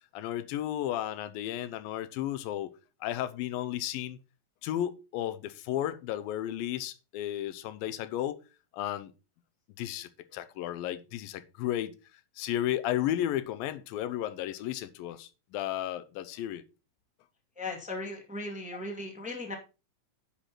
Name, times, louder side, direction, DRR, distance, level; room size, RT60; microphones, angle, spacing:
voice 1, 0.1-2.7 3.0-4.2 4.6-8.4 8.7-9.1 9.8-11.9 12.4-16.6, left 12 dB, 90° left, 2.5 m, -33 dB
voice 2, 17.6-19.5, left 2 dB, 5° right, 1.3 m, -37 dB
10.0 x 4.3 x 5.8 m
omnidirectional pair, 4.0 m